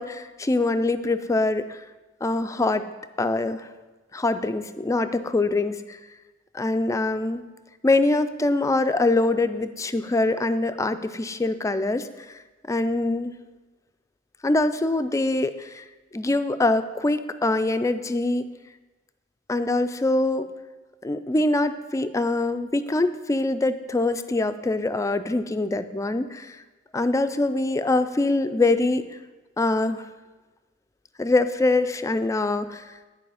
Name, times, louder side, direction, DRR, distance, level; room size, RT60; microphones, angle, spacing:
voice 1, 0.0-1.8 2.2-2.8 3.2-3.7 4.1-6.0 6.5-7.4 7.8-12.1 12.7-13.3 14.4-15.8 16.1-18.4 19.5-20.5 21.0-26.6 26.9-29.0 29.6-30.0 31.2-32.8, left 2 dB, 15° left, 10 dB, 0.3 m, -24 dB
10.5 x 4.7 x 4.9 m, 1.2 s
head